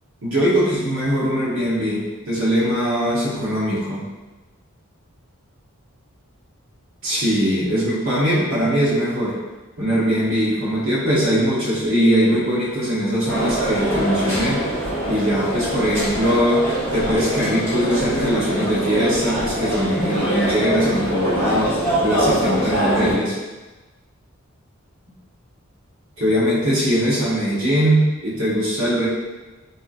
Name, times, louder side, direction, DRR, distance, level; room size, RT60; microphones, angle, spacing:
voice 1, 0.2-4.0 7.0-9.3 9.8-14.7 15.1-16.7 16.9-23.4 26.2-29.1, equal, 65° right, -7 dB, 1.0 m, -21 dB
sound 1, 13.3-23.1, right 1 dB, 15° left, 1.1 m, -24 dB
2.8 x 2.4 x 2.4 m, 1.2 s
head